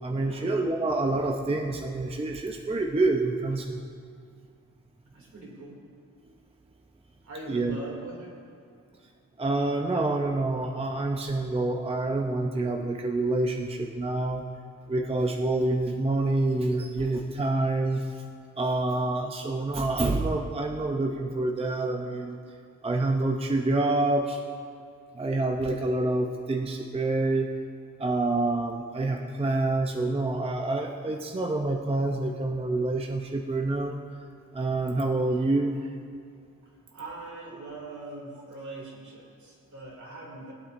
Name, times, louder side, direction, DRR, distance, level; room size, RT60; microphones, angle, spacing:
voice 1, 0.0-3.8 7.5-7.8 9.4-14.5 14.9-18.2 18.6-22.4 22.8-24.4 25.1-27.5 28.0-34.2 34.5-35.9, right 2 dB, 15° right, 2 dB, 0.6 m, -27 dB
voice 2, 5.1-5.7 7.2-8.3 36.9-40.5, right 2 dB, 55° right, -2 dB, 2.6 m, -41 dB
20.5 x 8.7 x 2.6 m, 2.2 s
wide cardioid pair, 130°, 34 cm